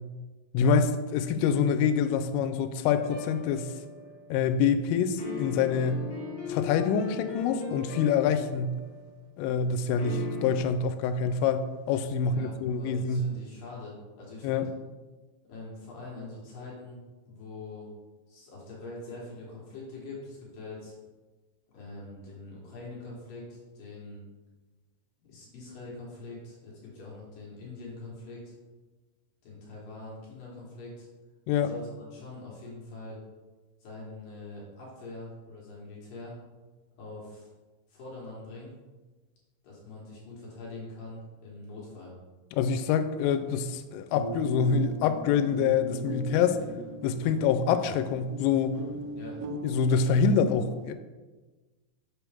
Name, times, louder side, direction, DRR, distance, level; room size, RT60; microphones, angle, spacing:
voice 1, 0.5-3.7 4.3-6.1 6.5-8.8 9.4-13.3 14.4-14.7 31.5-31.7 42.5-46.6 47.0-48.8 49.6-50.9, left 6 dB, 85° left, 10 dB, 3.1 m, -26 dB
sound 1, 2.9-4.3 5.2-9.1 10.0-10.6, left 4 dB, 40° left, 1.6 m, -38 dB
voice 2, 12.2-14.7 15.5-17.0 17.3-17.9 18.3-20.9 21.7-24.3 25.2-28.5 29.4-31.1 31.6-33.2 33.8-36.4 37.0-37.5 37.9-38.8 39.6-42.1 49.1-49.4, left 2 dB, 65° left, -5 dB, 2.4 m, -43 dB
sound 2, 44.1-50.3, right 3 dB, 80° right, 2.9 m, -39 dB
6.8 x 6.1 x 3.5 m, 1.3 s
omnidirectional pair, 5.6 m